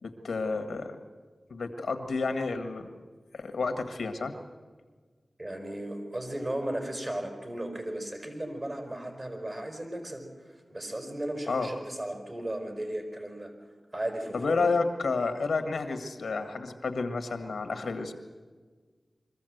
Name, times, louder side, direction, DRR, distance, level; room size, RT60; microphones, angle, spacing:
voice 1, 0.0-1.0 1.5-2.9 3.3-4.3 11.5-11.7 14.3-18.1, left 4 dB, 90° left, 8 dB, 1.6 m, -30 dB
voice 2, 5.4-13.5 13.9-14.6, right 1 dB, 40° right, 4 dB, 4.9 m, -35 dB
23.0 x 14.5 x 7.9 m, 1.5 s
cardioid pair, 40°, 0 cm